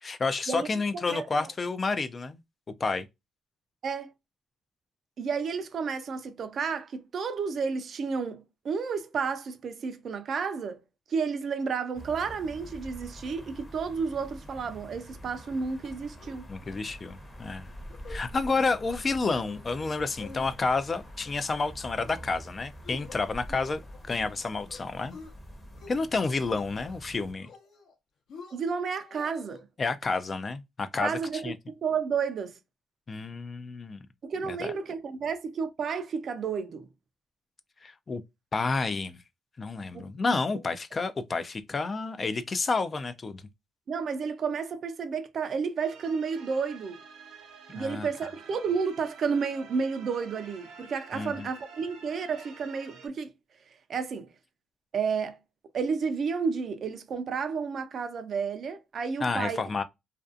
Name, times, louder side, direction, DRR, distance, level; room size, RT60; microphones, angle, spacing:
voice 1, 0.0-2.4 2.8-3.1 16.5-17.7 18.1-23.8 24.1-25.2 25.9-27.5 29.8-31.5 33.1-34.0 34.5-34.7 37.8-38.2 38.5-39.2 39.6-43.4 47.7-48.1 51.1-51.5 59.2-59.8, left 4 dB, 35° left, 0.3 m, -30 dB
voice 2, 1.1-1.5 3.8-4.1 5.2-10.8 11.1-16.4 28.5-29.7 31.0-32.6 34.2-36.9 39.9-40.1 43.9-47.0 47.7-53.3 53.9-54.3 54.9-55.4 55.7-59.6, right 5 dB, 55° right, 0.4 m, -31 dB
sound 1, 11.9-27.3, equal, 20° left, 0.8 m, -46 dB
sound 2, 15.8-16.4 16.7-16.8 17.1-17.4 17.8-18.2 18.6-19.0 19.4-19.9 20.2-20.9 21.2-21.7 22.0-22.4 22.8-24.4 24.7-25.3 25.7-26.1 26.3-27.0 27.4-27.9 28.3-29.6, left 4 dB, 65° left, 0.7 m, -48 dB
sound 3, 45.8-53.1, right 5 dB, 90° right, 0.7 m, -49 dB
2.5 x 2.3 x 2.4 m
cardioid pair, 90°, 0 cm